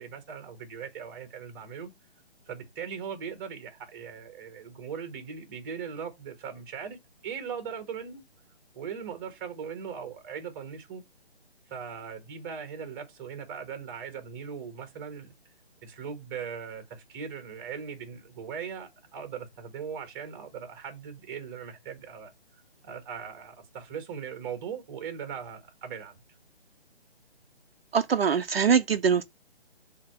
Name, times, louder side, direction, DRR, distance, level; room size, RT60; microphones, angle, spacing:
voice 1, 0.0-1.9 2.5-8.2 8.7-11.0 11.7-15.3 15.8-22.3 22.8-26.2, right 7 dB, 20° right, 1.3 m, -39 dB
voice 2, 27.9-29.2, right 6 dB, 65° right, 0.6 m, -23 dB
7.3 x 2.9 x 4.5 m
figure-of-eight pair, 150°, 32 cm